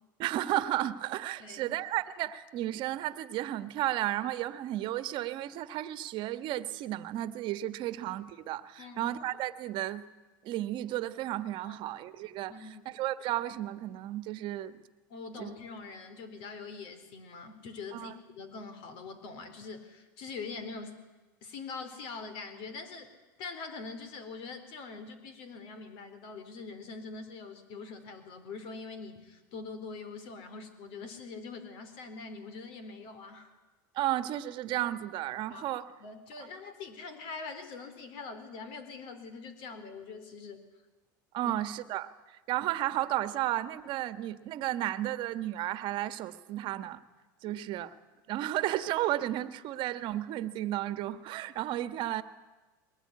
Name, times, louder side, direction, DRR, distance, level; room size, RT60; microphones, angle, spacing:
voice 1, 0.2-10.0 10.4-14.8 15.3-15.5 17.9-18.2 33.9-35.9 41.3-47.0 47.4-47.9 48.3-52.2, right 14 dB, 45° right, 12 dB, 1.4 m, -33 dB
voice 2, 1.4-1.8 8.8-9.1 11.6-11.8 12.5-12.8 15.1-21.0 21.4-23.1 23.4-33.5 35.5-35.7 36.0-40.6 41.4-41.5 47.4-47.6, left 4 dB, 55° left, 10 dB, 4.1 m, -43 dB
22.0 x 19.5 x 9.7 m, 1.2 s
supercardioid pair, 125°, 11 cm